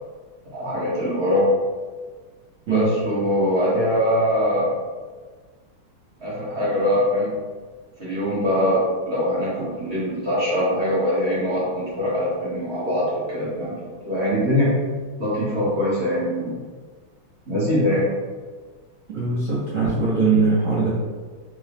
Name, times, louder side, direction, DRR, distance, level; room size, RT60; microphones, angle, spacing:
voice 1, 0.5-1.5 2.7-4.7 6.2-7.3 8.0-14.7 15.2-16.6 17.5-18.1 19.8-20.0 20.3-20.4, equal, 40° right, -9 dB, 1.0 m, -23 dB
voice 2, 19.1-20.9, right 4 dB, 75° right, -8 dB, 0.7 m, -21 dB
3.7 x 2.7 x 3.3 m, 1.4 s
omnidirectional pair, 2.4 m